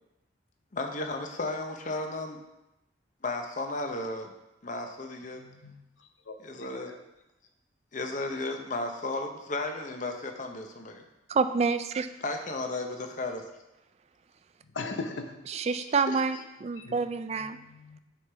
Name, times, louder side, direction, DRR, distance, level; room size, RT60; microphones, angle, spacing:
voice 1, 0.7-2.4 3.2-4.3 4.6-5.4 6.4-6.9 7.9-11.1 12.2-13.5 15.8-15.9 16.1-16.4, left 2 dB, 40° left, 4 dB, 0.8 m, -34 dB
voice 2, 5.4-5.8 6.3-6.9 14.7-15.3 16.8-16.9 17.4-18.0, left 3 dB, 90° left, 6 dB, 0.8 m, -39 dB
voice 3, 11.3-12.1 15.5-17.6, right 4 dB, 35° right, 11 dB, 0.3 m, -28 dB
7.9 x 5.9 x 3.4 m, 0.92 s
head